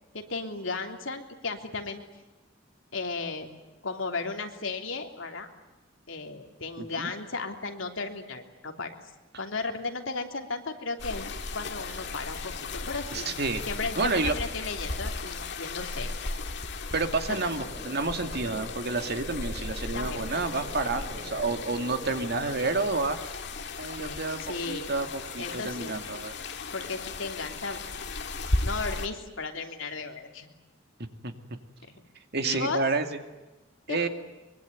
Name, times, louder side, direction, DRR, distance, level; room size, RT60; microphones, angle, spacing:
voice 1, 0.1-2.0 2.9-3.5 3.8-5.5 6.1-8.9 9.4-11.3 11.5-12.4 12.7-13.3 13.7-16.1 17.3-17.4 19.7-20.3 24.0-25.1 25.4-26.0 26.7-27.8 28.6-30.5 31.9-32.0 32.4-32.8 33.9-34.1, left 3 dB, 75° left, 4 dB, 3.2 m, -35 dB
voice 2, 6.8-7.1 13.1-13.6 14.0-14.3 16.9-23.2 23.8-24.4 24.7-26.3 31.2-31.3 32.3-33.1 33.9-34.1, right 3 dB, 55° right, 6 dB, 2.4 m, -29 dB
sound 1, 11.0-29.1, left 3 dB, 60° left, 2.1 m, -36 dB
sound 2, 17.3-22.8, equal, 15° right, 5.5 m, -44 dB
24.0 x 23.5 x 9.4 m, 1.1 s
head